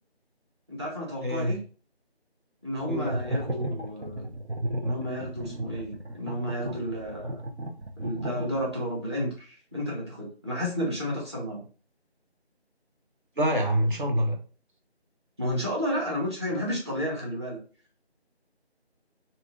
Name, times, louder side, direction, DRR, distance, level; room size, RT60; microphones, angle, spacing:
voice 1, 0.7-1.6 2.6-4.4 4.8-7.4 8.0-11.6 15.4-17.6, equal, 25° right, -4 dB, 1.0 m, -32 dB
voice 2, 1.2-1.6 2.9-3.2 13.4-14.4, equal, 50° right, 2 dB, 0.9 m, -26 dB
Talk Monster, 2.8-8.9, right 1 dB, 90° right, 1.1 m, -34 dB
2.7 x 2.5 x 3.6 m, 0.39 s
figure-of-eight pair, 170°, 33 cm